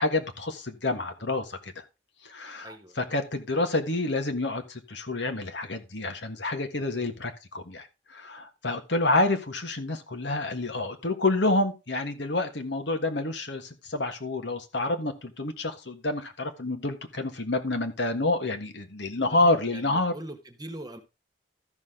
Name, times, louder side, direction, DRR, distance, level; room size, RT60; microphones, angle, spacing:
voice 1, 0.0-1.8 2.2-20.1, left 2 dB, 70° left, 1.6 m, -28 dB
voice 2, 2.6-3.0 19.3-21.0, right 1 dB, 20° right, 1.4 m, -42 dB
13.5 x 6.3 x 3.7 m
head